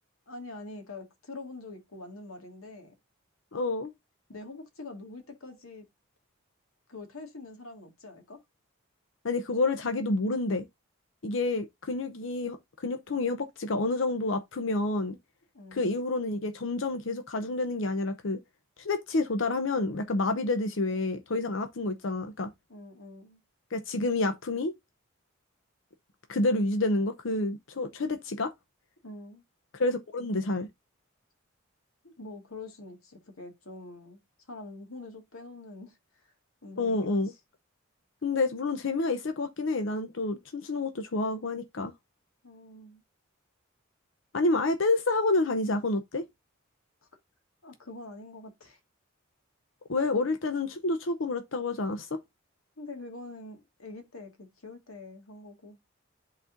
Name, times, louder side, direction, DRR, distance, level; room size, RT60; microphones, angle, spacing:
voice 1, 0.3-2.9 4.3-5.9 6.9-8.4 15.5-15.9 22.7-23.4 29.0-29.4 32.0-34.2 34.5-36.2 36.6-37.3 42.4-43.0 47.6-48.8 52.8-55.8, left 2 dB, 85° left, 1.9 m, -45 dB
voice 2, 3.5-3.9 9.2-10.7 11.2-15.2 15.7-18.4 18.8-22.5 23.7-24.7 26.3-28.5 29.7-30.7 36.8-37.3 38.2-41.9 44.3-46.2 49.9-52.1, left 2 dB, 65° left, 0.7 m, -29 dB
11.0 x 4.2 x 2.6 m
head